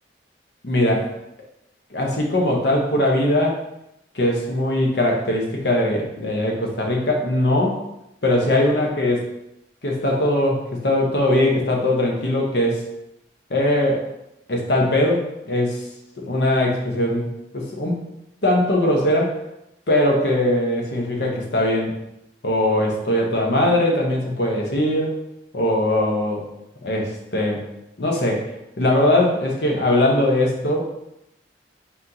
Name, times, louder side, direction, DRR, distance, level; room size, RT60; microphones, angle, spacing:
voice 1, 0.6-1.1 1.9-3.6 4.1-7.8 8.2-9.3 9.8-12.8 13.5-14.1 14.5-15.8 16.2-18.0 18.4-19.4 19.9-21.9 22.4-25.2 25.5-26.5 26.8-27.7 28.0-30.8, left 1 dB, 70° left, 0 dB, 0.9 m, -20 dB
4.1 x 2.9 x 3.9 m, 0.84 s
head